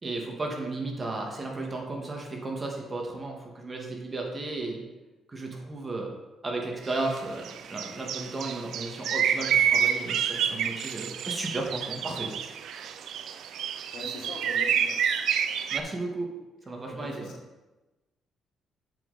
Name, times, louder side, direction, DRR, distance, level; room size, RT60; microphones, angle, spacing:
voice 1, 0.0-4.8 5.3-6.1 6.4-12.3 15.7-16.3 16.7-17.3, right 2 dB, 30° right, 0 dB, 1.7 m, -34 dB
sound 1, 6.9-7.2 7.4-15.8, right 8 dB, 75° right, 0.4 m, -28 dB
voice 2, 13.9-15.0 16.9-17.3, left 2 dB, 75° left, 1 dB, 1.3 m, -41 dB
7.3 x 5.3 x 4.1 m, 1.1 s
cardioid pair, 90°, 0 cm